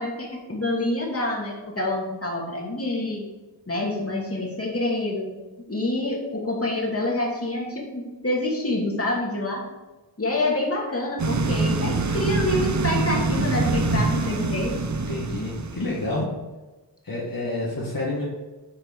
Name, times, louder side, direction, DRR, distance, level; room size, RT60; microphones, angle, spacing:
voice 1, 0.0-3.2 3.7-5.3 5.7-9.6 10.2-14.8, left 1 dB, 30° left, -2 dB, 2.6 m, -27 dB
sound 1, 11.2-16.2, right 3 dB, 40° right, 0.8 m, -25 dB
voice 2, 15.1-16.3 17.0-18.2, left 2 dB, 50° left, -5 dB, 2.0 m, -29 dB
9.3 x 4.8 x 4.8 m, 1.2 s
cardioid pair, 55°, 44 cm